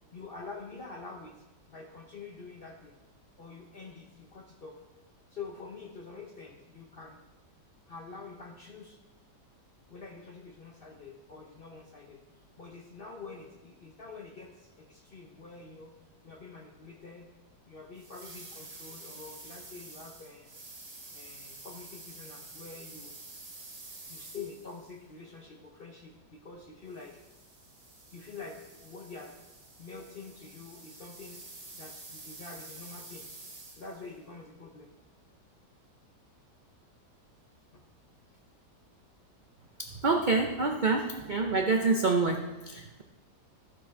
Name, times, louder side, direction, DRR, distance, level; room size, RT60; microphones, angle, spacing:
voice 1, 0.1-3.0 3.4-4.8 5.3-7.2 7.9-9.0 9.9-15.9 16.2-17.3 17.7-20.6 21.1-23.2 24.1-27.2 28.1-29.4 29.8-31.4 31.7-33.3 33.7-34.9 37.7-37.8 42.9-43.0, left 4 dB, 50° left, 3 dB, 0.7 m, -46 dB
sound 1, 18.0-25.0 26.9-34.1, right 2 dB, 25° right, 1.0 m, -49 dB
voice 2, 39.8-43.0, right 3 dB, 60° right, 3 dB, 0.5 m, -27 dB
12.0 x 6.8 x 4.5 m, 1.1 s
omnidirectional pair, 1.8 m